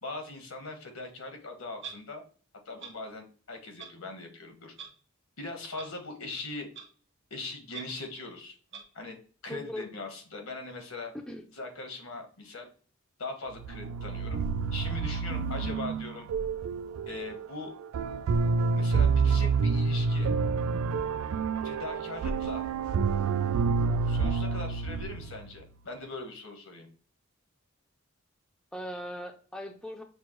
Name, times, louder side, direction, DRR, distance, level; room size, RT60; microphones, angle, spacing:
voice 1, 0.0-2.2 2.6-4.7 5.4-6.7 7.3-8.5 8.9-9.2 9.4-11.1 11.5-12.7 13.2-14.4 14.7-16.3 17.1-17.7 18.7-20.3 21.6-22.6 24.1-26.9, left 3 dB, 85° left, 3 dB, 1.1 m, -40 dB
Clock, 1.8-2.0 2.8-2.9 3.8-3.9 4.8-4.9 5.8-5.9 6.7-6.8 7.7-7.8 8.7-8.8, right 7 dB, 60° right, 1.1 m, -41 dB
voice 2, 9.5-9.9 11.1-11.4 28.7-30.0, left 1 dB, 5° left, 3 dB, 0.3 m, -39 dB
sound 1, 13.5-25.6, right 5 dB, 85° right, 0.3 m, -28 dB
5.9 x 2.1 x 3.0 m, 0.40 s
head